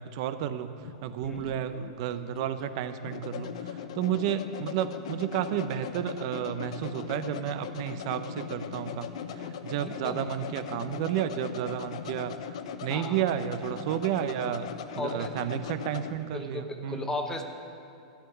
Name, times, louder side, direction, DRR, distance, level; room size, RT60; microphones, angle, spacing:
voice 1, 0.0-17.2, right 10 dB, 55° right, 11 dB, 0.6 m, -32 dB
sound 1, 0.8-16.2, left 8 dB, 75° left, 0.7 m, -39 dB
voice 2, 1.2-1.6 9.8-10.2 12.9-13.2 15.0-15.3 16.3-16.6 16.9-17.4, left 3 dB, 15° left, 5 dB, 1.0 m, -35 dB
13.0 x 5.8 x 9.1 m, 2.5 s
supercardioid pair, 135°, 3 cm